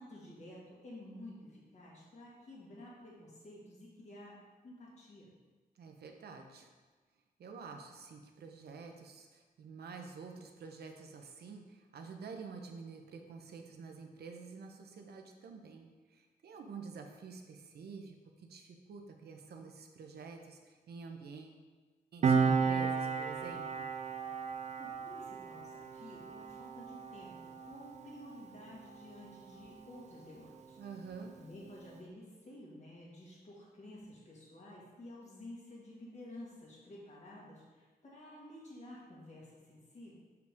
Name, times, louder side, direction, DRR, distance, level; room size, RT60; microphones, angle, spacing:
voice 1, 0.0-5.3 24.8-30.8 31.4-40.1, left 1 dB, 45° left, -5 dB, 1.6 m, -52 dB
voice 2, 5.8-6.7 7.4-21.6 22.1-23.9 30.8-31.3, right 5 dB, 85° right, 4 dB, 0.7 m, -49 dB
Piano, 22.2-29.2 29.5-29.7, right 5 dB, 45° right, 0.4 m, -34 dB
6.5 x 4.9 x 3.5 m, 1.3 s
wide cardioid pair, 175°, 16 cm